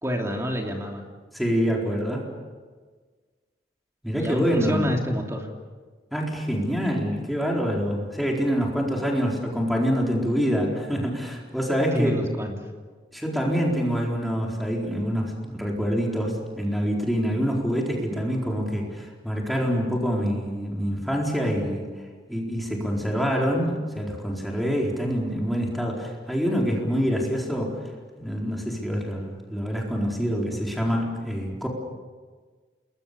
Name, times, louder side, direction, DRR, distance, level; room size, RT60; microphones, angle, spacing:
voice 1, 0.0-1.1 4.2-5.5 11.9-12.5, equal, 15° right, 1 dB, 3.0 m, -27 dB
voice 2, 1.3-2.3 4.0-4.9 6.1-12.1 13.1-21.9 22.3-27.8 28.1-31.7, equal, ahead, -2 dB, 4.3 m, -26 dB
29.5 x 21.5 x 6.9 m, 1.5 s
head